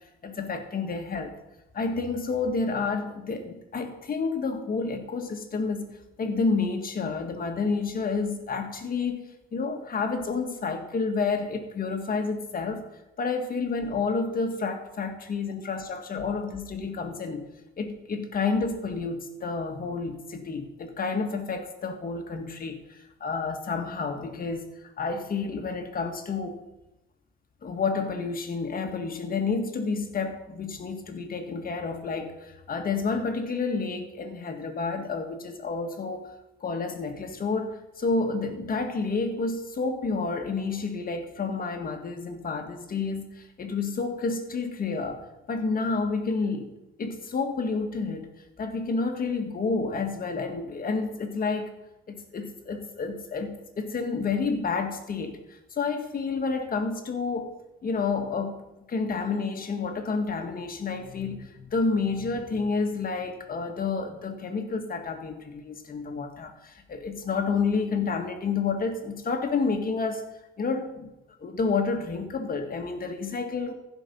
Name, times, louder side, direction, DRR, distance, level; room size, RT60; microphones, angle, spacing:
voice 1, 0.2-1.3 1.7-5.9 6.2-9.2 9.5-12.8 13.2-17.5 17.8-24.6 25.0-26.6 27.6-36.3 36.6-45.2 45.5-46.7 47.0-48.3 48.6-51.7 52.1-55.4 55.7-57.5 57.8-58.6 58.9-70.2 70.6-71.1 71.4-73.7, left 4 dB, 45° left, 6 dB, 1.6 m, -29 dB
15.5 x 5.2 x 5.4 m, 0.94 s
cardioid pair, 90°, 20 cm